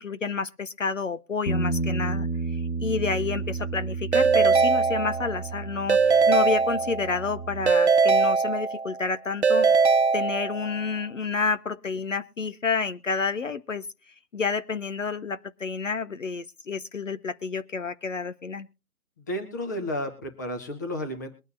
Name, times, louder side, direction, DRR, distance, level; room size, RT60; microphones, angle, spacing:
voice 1, 0.0-13.9 14.3-18.7, left 4 dB, 55° left, 12 dB, 0.8 m, -30 dB
Bass guitar, 1.5-7.7, right 3 dB, 80° left, 1.3 m, -31 dB
Keyboard (musical) / Ringtone, 4.1-5.5 5.9-7.2 7.7-9.0 9.4-10.8, right 5 dB, 50° right, 0.5 m, -21 dB
voice 2, 19.2-21.3, left 1 dB, 10° left, 5 dB, 0.9 m, -32 dB
22.5 x 9.2 x 2.6 m, 0.31 s
figure-of-eight pair, 150°, 44 cm